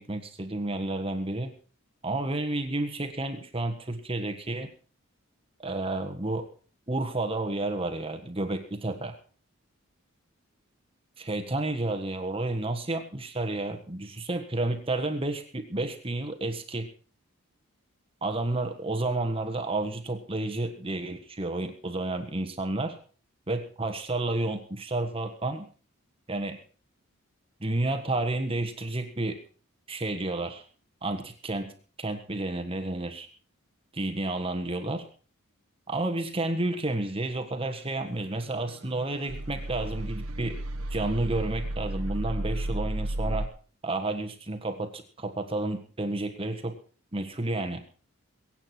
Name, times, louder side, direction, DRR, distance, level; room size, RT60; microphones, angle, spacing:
voice 1, 0.0-1.5 2.0-4.7 5.6-6.5 6.9-9.2 11.2-16.9 18.2-23.0 23.5-25.7 26.3-26.6 27.6-29.4 29.9-30.6 31.0-31.7 32.0-33.3 33.9-35.1 35.9-40.6 40.9-43.5 43.8-46.8 47.1-47.8, right 2 dB, 25° right, 7 dB, 1.5 m, -31 dB
sound 1, 38.2-43.5, right 1 dB, 80° right, 1.4 m, -33 dB
23.0 x 8.9 x 4.4 m, 0.39 s
head